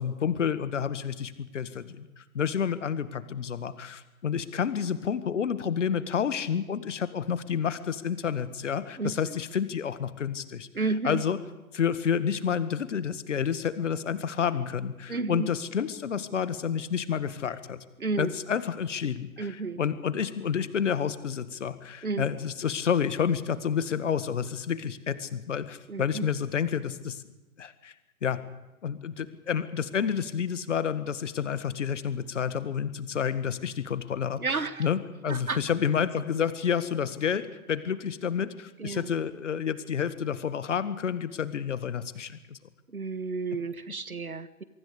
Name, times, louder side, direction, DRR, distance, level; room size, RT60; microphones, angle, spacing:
voice 1, 0.0-11.4 11.7-17.8 18.2-27.2 27.6-27.9 28.2-28.4 28.8-42.6, left 7 dB, 55° left, 13 dB, 2.0 m, -29 dB
voice 2, 9.0-9.4 10.7-11.2 15.1-15.5 18.0-18.3 19.4-19.8 22.0-22.3 25.9-26.3 34.4-34.9 35.3-35.6 38.8-39.1 42.9-44.6, right 4 dB, 80° right, 14 dB, 1.8 m, -32 dB
25.5 x 23.5 x 5.1 m, 1.0 s
figure-of-eight pair, 120°, 43 cm